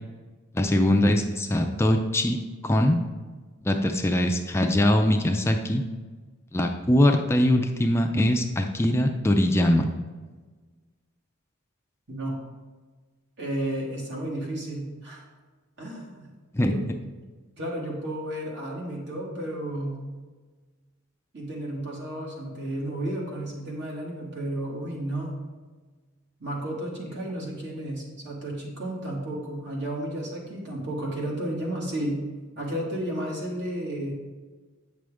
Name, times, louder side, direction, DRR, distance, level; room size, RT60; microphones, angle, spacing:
voice 1, 0.5-2.4 2.6-3.0 3.7-5.8 6.5-9.9 16.5-16.7, left 1 dB, 15° left, 4 dB, 0.4 m, -22 dB
voice 2, 13.4-15.2 15.8-16.3 16.6-16.9 17.6-20.1 21.3-25.4 26.4-32.3 32.6-34.1, right 1 dB, 60° right, -3 dB, 2.1 m, -32 dB
8.6 x 6.2 x 3.5 m, 1.4 s
head